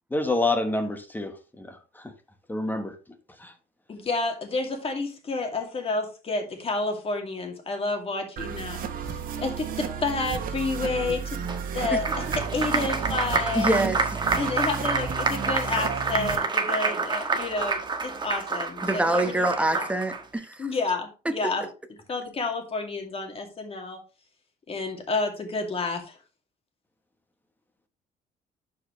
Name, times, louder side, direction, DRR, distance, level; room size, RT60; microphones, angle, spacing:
voice 1, 0.1-2.1 2.5-2.9 3.4-3.5, left 2 dB, 10° left, 1.3 m, -28 dB
voice 2, 3.9-8.8 9.0-12.2 12.5-13.8 14.4-19.4 19.7-19.9 20.6-21.7 22.1-24.0 24.7-26.2, left 3 dB, 35° left, 2.3 m, -30 dB
sound 1, 8.4-16.4, right 7 dB, 55° right, 1.3 m, -33 dB
Applause, 11.5-20.2, right 4 dB, 25° right, 1.3 m, -28 dB
voice 3, 13.5-14.2 18.8-20.7 21.4-21.5, right 1 dB, 5° right, 1.1 m, -25 dB
11.5 x 4.9 x 3.2 m
cardioid pair, 110°, 17 cm